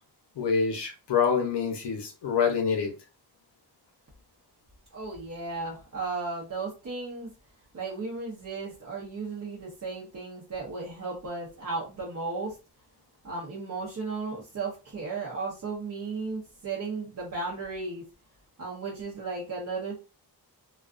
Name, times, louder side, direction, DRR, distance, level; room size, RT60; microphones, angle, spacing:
voice 1, 0.4-2.9, left 6 dB, 85° left, 3 dB, 0.8 m, -26 dB
voice 2, 4.9-7.3 7.7-12.5 13.2-18.0 18.6-20.0, right 3 dB, 45° right, -4 dB, 0.7 m, -35 dB
2.4 x 2.3 x 2.4 m, 0.31 s
wide cardioid pair, 145°, 40 cm